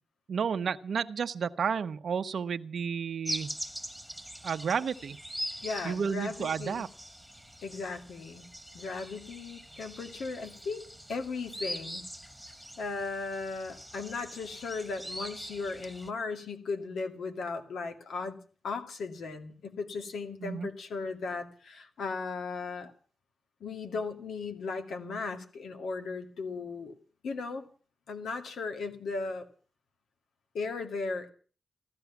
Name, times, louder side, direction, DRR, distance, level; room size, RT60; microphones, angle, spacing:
voice 1, 0.3-3.6 4.4-5.2 5.8-6.9 20.4-20.7, right 6 dB, 70° right, 8 dB, 0.8 m, -31 dB
sound 1, 3.2-16.1, equal, 5° left, 1.8 m, -42 dB
voice 2, 5.6-6.8 7.6-8.5 8.7-12.0 12.8-18.4 18.6-22.9 23.6-26.9 27.2-27.7 28.1-29.5 30.5-31.3, left 4 dB, 85° left, 6 dB, 2.2 m, -36 dB
15.5 x 13.0 x 7.1 m, 0.42 s
cardioid pair, 100°, 0 cm